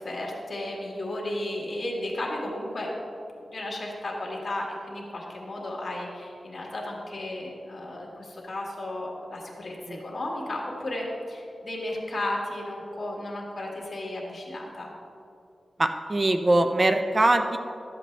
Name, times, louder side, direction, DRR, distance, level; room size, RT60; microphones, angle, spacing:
voice 1, 0.0-2.9 3.5-9.7 10.0-14.9, left 1 dB, 50° left, -2 dB, 1.9 m, -34 dB
voice 2, 15.8-17.6, right 2 dB, 35° right, 7 dB, 0.5 m, -22 dB
12.5 x 7.6 x 3.3 m, 2.6 s
wide cardioid pair, 70°, 0 cm